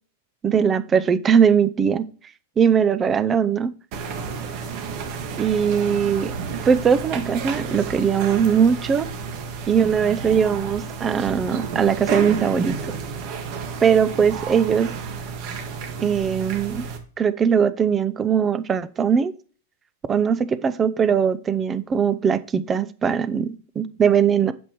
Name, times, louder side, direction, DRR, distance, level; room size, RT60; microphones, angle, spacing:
voice 1, 0.4-2.1 2.6-3.7 5.4-6.3 6.6-9.1 9.7-12.9 13.8-14.9 16.0-16.8 17.2-19.3 20.1-24.5, right 7 dB, 20° right, 15 dB, 0.5 m, -20 dB
sound 1, 3.9-17.0, right 5 dB, 50° right, 1.7 m, -31 dB
8.1 x 7.1 x 3.0 m, 0.40 s
hypercardioid pair, 130°, 0 cm